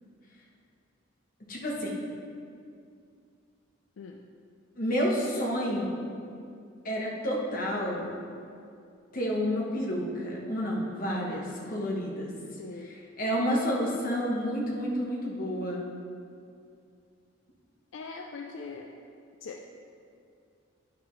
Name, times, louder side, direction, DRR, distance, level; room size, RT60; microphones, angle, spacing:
voice 1, 1.5-2.0 4.8-6.0 6.8-8.1 9.1-12.3 13.2-15.8, equal, 45° left, -3 dB, 1.2 m, -30 dB
voice 2, 12.6-13.0 17.9-18.9 19.4-19.7, left 4 dB, 75° left, 2 dB, 0.4 m, -41 dB
9.5 x 5.8 x 3.2 m, 2.4 s
head